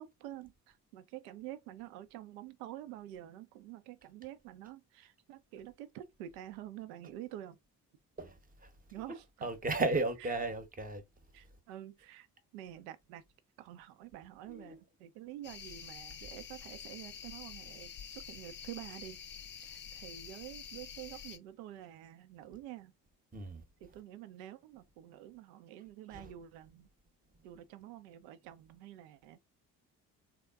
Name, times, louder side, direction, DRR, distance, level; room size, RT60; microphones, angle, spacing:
voice 1, 0.0-7.6 8.9-9.5 9.9-10.3 11.3-12.3 12.5-13.2 13.6-19.2 19.6-22.9 23.8-26.9 27.4-29.4, right 13 dB, 70° right, 0.5 m, -48 dB
voice 2, 8.2-8.7 9.4-11.0 14.5-14.8 23.3-23.6 26.1-26.3, right 2 dB, 20° right, 0.8 m, -35 dB
sound 1, 15.4-21.4, left 7 dB, 25° left, 0.4 m, -48 dB
3.5 x 2.1 x 2.4 m
figure-of-eight pair, 45°, 48 cm